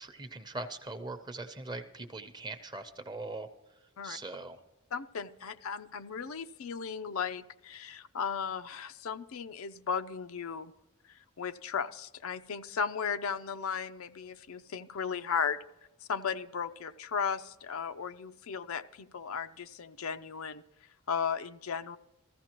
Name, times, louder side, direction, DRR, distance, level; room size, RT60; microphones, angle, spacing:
voice 1, 0.0-3.5 4.0-4.6, right 2 dB, 20° right, 9 dB, 0.7 m, -41 dB
voice 2, 4.9-10.7 11.4-15.6 16.1-20.6 21.1-22.0, left 6 dB, 70° left, 11 dB, 0.5 m, -35 dB
15.0 x 14.5 x 3.0 m, 0.96 s
head